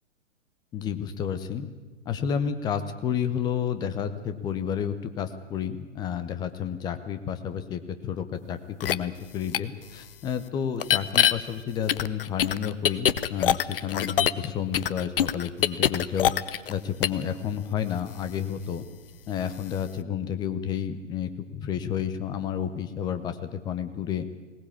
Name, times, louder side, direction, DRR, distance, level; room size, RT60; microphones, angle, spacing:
voice 1, 0.7-1.7 2.0-16.3 16.7-18.9 19.3-24.2, left 8 dB, 10° left, 10 dB, 0.7 m, -31 dB
sound 1, 8.8-8.9 9.5-9.6 10.8-11.3 11.9-14.5 14.7-16.7 17.0-17.2, left 10 dB, 45° left, 0.8 m, -23 dB
20.5 x 18.5 x 8.6 m, 1.3 s
figure-of-eight pair, 125°, 38 cm